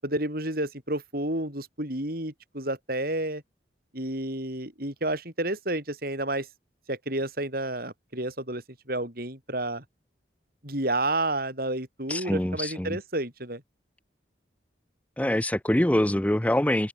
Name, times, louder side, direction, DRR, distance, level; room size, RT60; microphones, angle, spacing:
voice 1, 0.0-3.4 3.9-6.5 6.9-9.8 10.6-13.6, right 1 dB, 55° right, 7.9 m, -30 dB
voice 2, 12.1-13.0 15.2-16.9, left 1 dB, 10° left, 0.5 m, -24 dB
open air
head